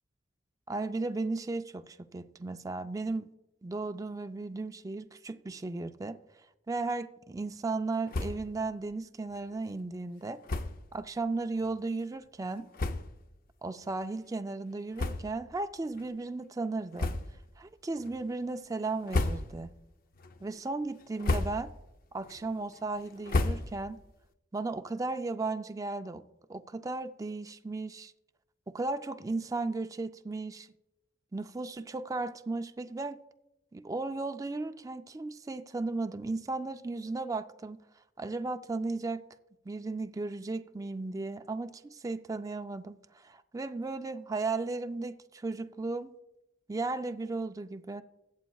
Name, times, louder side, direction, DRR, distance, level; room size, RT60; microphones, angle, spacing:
voice 1, 0.7-3.3 3.6-6.2 6.7-10.4 10.9-12.7 13.6-17.1 17.6-19.7 20.4-21.7 22.1-24.0 24.5-26.2 26.5-28.1 28.7-30.7 31.3-33.2 33.7-37.8 38.2-39.2 39.7-46.1 46.7-48.0, right 3 dB, 20° right, 0.4 m, -35 dB
sound 1, 8.1-8.6 8.9-9.0 9.3-9.4 10.4-10.9 11.6-11.7 12.4-12.5 12.7-13.3 13.8-14.0 14.9-15.6 15.9-16.1 16.9-17.5 18.0-18.4 18.9-19.8 20.2-20.6 21.0-21.9 22.2-24.1, left 2 dB, 50° left, 0.6 m, -33 dB
21.5 x 7.9 x 2.3 m
head